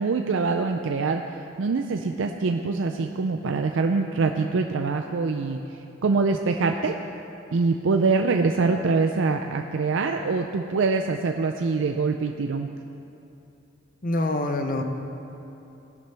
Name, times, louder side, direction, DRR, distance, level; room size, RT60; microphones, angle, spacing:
voice 1, 0.0-7.0 7.5-12.7, right 4 dB, 70° right, 5 dB, 0.5 m, -24 dB
voice 2, 14.0-14.8, left 2 dB, 45° left, 6 dB, 0.9 m, -25 dB
17.5 x 11.0 x 3.4 m, 2.9 s
head